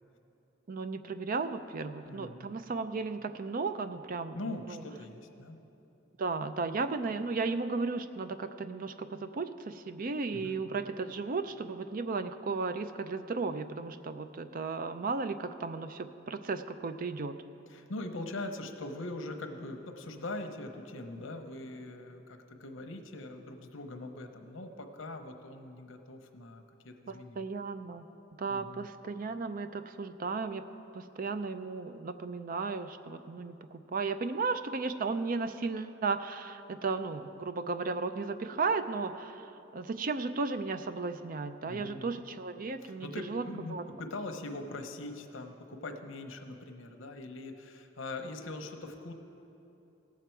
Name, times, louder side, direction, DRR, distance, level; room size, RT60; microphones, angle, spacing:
voice 1, 0.7-4.8 6.2-17.4 27.1-28.0 28.4-30.6 30.9-43.4 43.7-43.8, right 4 dB, 45° right, 10 dB, 0.5 m, -35 dB
voice 2, 2.0-2.5 4.3-5.6 10.3-10.6 17.7-27.4 28.5-28.9 41.7-42.1 42.8-49.1, left 2 dB, 85° left, 5 dB, 0.9 m, -42 dB
18.0 x 7.6 x 4.6 m, 3.0 s
head